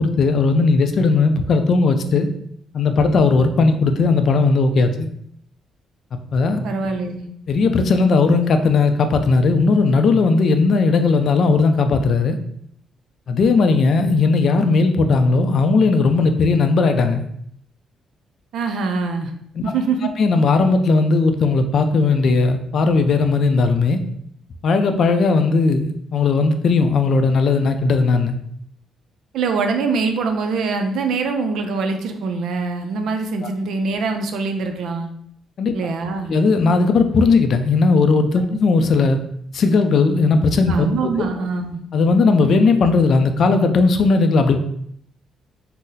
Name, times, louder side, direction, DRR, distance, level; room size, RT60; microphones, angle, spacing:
voice 1, 0.0-2.3 2.7-5.1 6.3-6.6 7.5-12.4 13.3-17.2 19.5-19.6 20.2-24.0 24.6-28.4 35.6-35.7 36.3-39.2 39.5-40.9 41.2-41.3 41.9-44.6, left 4 dB, 60° left, 7 dB, 0.3 m, -17 dB
voice 2, 6.6-7.3 18.5-19.3 19.6-20.1 29.3-35.1 35.7-36.3 38.5-38.6 40.7-41.8, right 4 dB, 75° right, 6 dB, 0.4 m, -23 dB
2.7 x 2.0 x 3.8 m, 0.70 s
cardioid pair, 90°, 0 cm